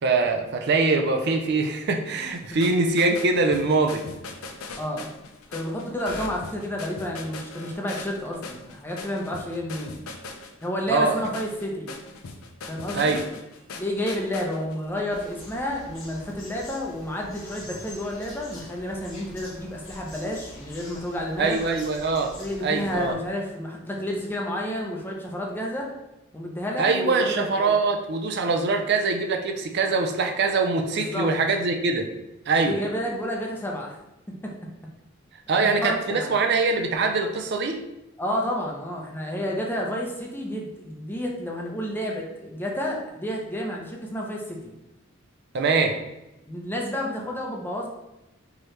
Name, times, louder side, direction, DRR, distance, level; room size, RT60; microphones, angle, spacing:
voice 1, 0.0-4.0 10.9-11.1 12.9-13.2 21.4-22.3 22.6-23.2 26.8-32.1 32.5-32.8 35.5-37.8 45.5-46.0, right 3 dB, 50° right, 5 dB, 0.5 m, -23 dB
sound 1, 2.2-15.0, left 3 dB, 90° left, 0.5 m, -40 dB
voice 2, 4.8-5.1 5.5-9.9 10.6-11.9 12.7-13.2 13.8-21.6 22.4-25.9 26.3-27.7 30.9-31.3 32.6-34.0 34.4-34.5 35.5-36.4 38.2-44.7 46.4-47.9, equal, 10° left, -1 dB, 0.6 m, -30 dB
sound 2, 15.1-23.1, left 1 dB, 70° left, 1.2 m, -44 dB
4.6 x 3.0 x 3.2 m, 0.95 s
head